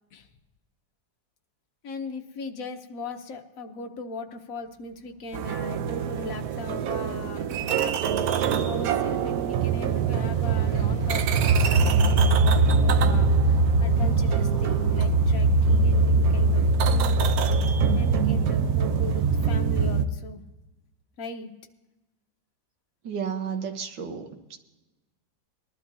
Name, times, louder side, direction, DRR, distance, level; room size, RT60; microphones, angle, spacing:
voice 1, 1.8-7.9 8.6-17.2 17.9-20.4 21.2-21.5, left 3 dB, 55° left, 5 dB, 1.3 m, -38 dB
Car passing by / Traffic noise roadway noise, 4.8-19.5, left 4 dB, 20° left, 3.3 m, -48 dB
sound 1, 5.3-20.0, right 4 dB, 65° right, 1.0 m, -22 dB
voice 2, 23.0-24.6, right 7 dB, 80° right, 5 dB, 1.9 m, -32 dB
20.5 x 12.0 x 2.7 m, 1.1 s
omnidirectional pair, 2.0 m